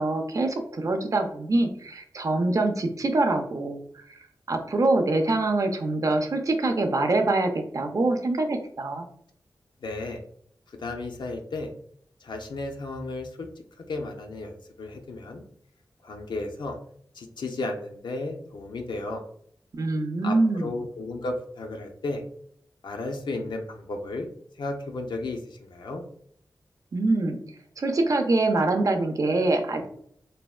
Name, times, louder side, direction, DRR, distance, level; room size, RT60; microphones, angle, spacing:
voice 1, 0.0-3.8 4.1-4.2 4.5-9.1 19.7-20.8 26.9-27.4 27.8-29.9, right 2 dB, 45° right, 5 dB, 0.4 m, -24 dB
voice 2, 9.8-10.2 10.8-11.7 12.2-13.5 13.9-15.4 16.0-16.8 17.1-19.2 20.2-22.2 22.8-24.3 24.6-26.0, left 2 dB, 75° left, 2 dB, 0.4 m, -34 dB
3.3 x 2.2 x 2.3 m, 0.66 s
wide cardioid pair, 100°, 8 cm